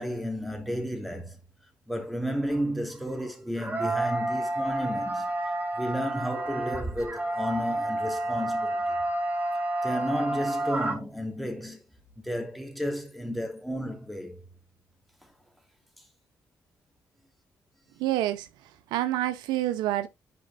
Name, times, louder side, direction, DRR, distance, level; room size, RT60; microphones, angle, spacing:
voice 1, 0.0-1.4 1.9-9.0 9.8-11.8 12.2-14.4, equal, ahead, 2.9 m, -32 dB
sound 1, 2.5-2.6 3.6-10.9, right 1 dB, 25° right, 2.0 m, -30 dB
voice 2, 18.0-18.5 18.9-20.1, right 14 dB, 90° right, 0.5 m, -27 dB
11.0 x 4.9 x 2.4 m
supercardioid pair, 55°, 7 cm